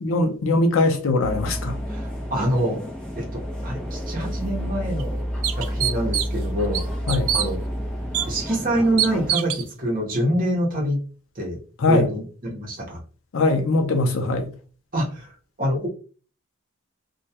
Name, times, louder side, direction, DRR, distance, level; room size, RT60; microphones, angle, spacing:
voice 1, 0.0-1.8 7.1-7.3 11.8-12.1 13.3-14.5, left 2 dB, 70° left, 0.5 m, -21 dB
sound 1, 1.2-9.3, equal, 5° left, 0.6 m, -30 dB
voice 2, 1.9-2.8 3.2-5.2 5.5-6.8 7.3-7.6 8.2-11.0 11.4-11.6 11.9-13.0 14.9-15.9, right 1 dB, 40° right, 0.8 m, -26 dB
sound 2, 4.4-4.5 5.0-5.1 5.4-6.4 6.7-7.5 8.1-8.3 9.0-9.6, right 10 dB, 80° right, 0.3 m, -24 dB
2.2 x 2.1 x 2.8 m
head